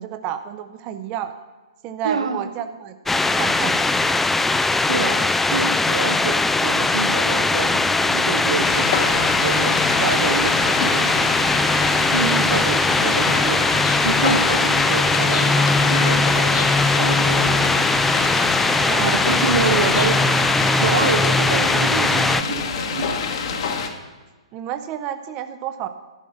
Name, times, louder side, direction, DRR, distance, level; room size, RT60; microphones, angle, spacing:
voice 1, 0.0-1.3 1.8-4.1 12.3-12.6 18.8-19.2 24.5-25.9, right 10 dB, 30° right, 9 dB, 0.7 m, -31 dB
voice 2, 2.0-2.5 4.9-11.2 12.1-13.7 14.0-17.9 19.0-20.3 20.7-23.6, right 4 dB, 75° right, 9 dB, 0.9 m, -27 dB
sound 1, 3.1-22.4, left 3 dB, 5° left, 0.4 m, -20 dB
sound 2, 8.6-23.9, left 6 dB, 55° left, 1.4 m, -27 dB
12.0 x 6.2 x 7.0 m, 1.3 s
figure-of-eight pair, 115°, 3 cm